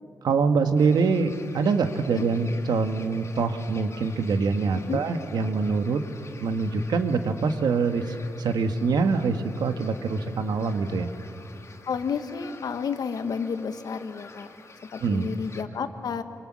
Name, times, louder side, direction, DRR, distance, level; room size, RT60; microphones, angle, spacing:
voice 1, 0.2-6.0 6.4-11.1 15.0-15.3, right 4 dB, 90° right, 7 dB, 1.4 m, -24 dB
sound 1, 0.7-15.6, left 3 dB, 45° left, 2.0 m, -49 dB
voice 2, 11.9-14.5 14.9-16.2, left 6 dB, 75° left, 9 dB, 1.3 m, -31 dB
26.0 x 24.5 x 7.3 m, 2.7 s
cardioid pair, 80°, 7 cm